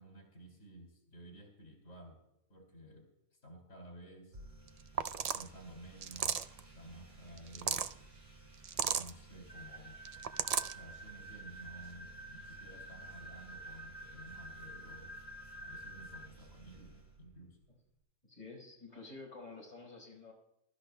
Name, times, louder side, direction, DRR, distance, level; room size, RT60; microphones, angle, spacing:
voice 1, 0.0-2.2 2.5-3.1 3.4-4.4 5.3-8.0 8.9-10.0 10.6-15.2 15.6-17.6, right 1 dB, 85° left, 1 dB, 2.9 m, -53 dB
sound 1, 4.3-17.7, right 2 dB, 65° right, 3.8 m, -57 dB
sound 2, 4.7-4.8 5.0-5.5 6.0-6.6 7.4-7.9 8.6-9.1 10.1-10.7, right 7 dB, 85° right, 0.3 m, -34 dB
sound 3, 9.5-16.3, right 1 dB, 55° left, 1.7 m, -50 dB
voice 2, 18.2-20.3, left 3 dB, 30° left, -2 dB, 4.6 m, -50 dB
23.0 x 12.5 x 2.2 m, 0.85 s
omnidirectional pair, 1.3 m